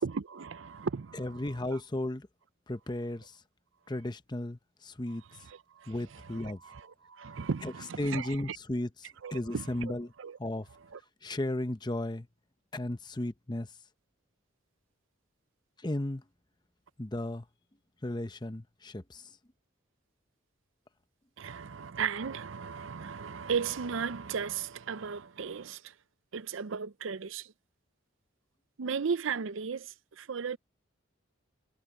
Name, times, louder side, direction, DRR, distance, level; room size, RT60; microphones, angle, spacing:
voice 1, 0.0-1.8 5.3-8.6 9.2-10.4 10.9-11.0 21.4-26.0 26.3-27.5 28.8-30.6, right 6 dB, 75° right, 0.6 m, -36 dB
voice 2, 1.2-2.3 2.7-3.4 3.9-5.2 5.9-6.6 7.6-7.7 8.0-8.9 9.3-10.1 10.4-10.7 11.2-12.3 12.7-13.7 15.8-16.2 17.0-17.5 18.0-19.4, left 1 dB, 20° left, 0.8 m, -34 dB
head